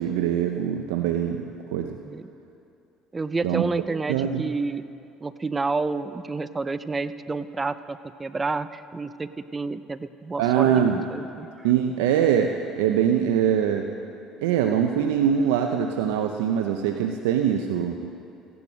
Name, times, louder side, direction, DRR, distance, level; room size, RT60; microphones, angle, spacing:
voice 1, 0.0-1.9 3.4-3.6 4.1-4.4 10.4-11.0 11.6-13.9 14.4-18.0, right 9 dB, 85° right, 4 dB, 0.7 m, -23 dB
voice 2, 3.1-4.8 5.2-11.7, right 3 dB, 20° right, 14 dB, 0.5 m, -30 dB
15.5 x 11.0 x 6.2 m, 2.6 s
supercardioid pair, 85°, 0 cm